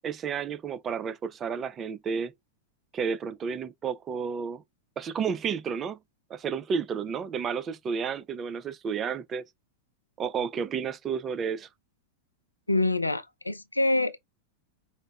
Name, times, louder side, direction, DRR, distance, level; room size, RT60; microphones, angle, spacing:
voice 1, 0.0-2.3 2.9-4.6 5.0-6.0 6.3-9.4 10.2-11.7, right 6 dB, 25° right, 0.4 m, -31 dB
voice 2, 12.7-14.2, left 2 dB, 85° left, 0.3 m, -26 dB
5.1 x 2.0 x 2.2 m
figure-of-eight pair, 90°, 0 cm